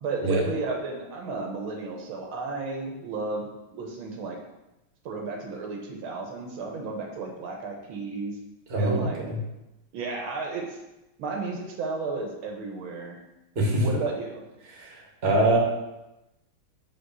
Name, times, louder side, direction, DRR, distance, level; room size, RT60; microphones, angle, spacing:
voice 1, 0.0-4.4 5.0-8.4 8.8-9.2 9.9-10.8 11.2-13.2 13.7-14.4, right 3 dB, 75° right, 1 dB, 1.7 m, -33 dB
voice 2, 8.7-9.4 13.5-13.8 14.7-15.6, right 1 dB, 35° right, -1 dB, 1.5 m, -24 dB
5.3 x 4.2 x 6.0 m, 0.97 s
omnidirectional pair, 2.3 m